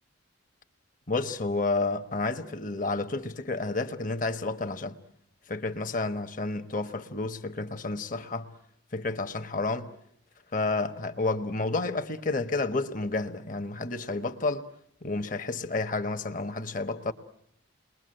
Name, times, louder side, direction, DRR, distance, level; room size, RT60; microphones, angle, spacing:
voice 1, 1.1-4.9 5.5-8.5 8.9-9.9 10.5-14.6 15.0-17.1, left 3 dB, 40° left, 1.2 m, -30 dB
29.5 x 22.0 x 7.8 m
head